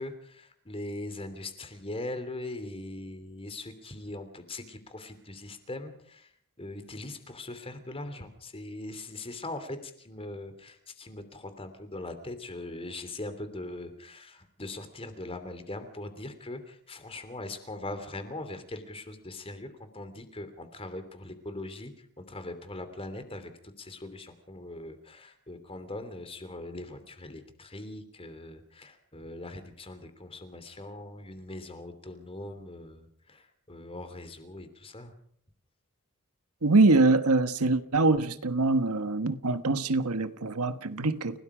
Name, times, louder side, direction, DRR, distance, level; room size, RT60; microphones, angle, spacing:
voice 1, 0.0-35.1, left 2 dB, 25° left, 3.0 m, -41 dB
voice 2, 36.6-41.4, right 3 dB, 80° right, 1.3 m, -24 dB
29.5 x 18.0 x 5.0 m
head